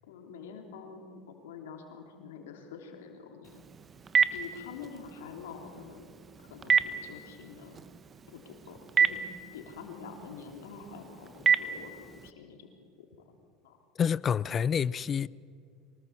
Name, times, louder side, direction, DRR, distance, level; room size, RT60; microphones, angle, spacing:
voice 1, 0.1-3.6 4.3-6.1 6.4-7.8 8.3-9.2 9.5-12.7 13.6-13.8, left 6 dB, 85° left, 3.2 m, -46 dB
Telephone, 3.4-12.3, right 6 dB, 25° right, 1.1 m, -31 dB
voice 2, 14.0-15.3, left 7 dB, 30° left, 0.5 m, -28 dB
24.5 x 19.0 x 7.3 m
supercardioid pair, 105°, 0 cm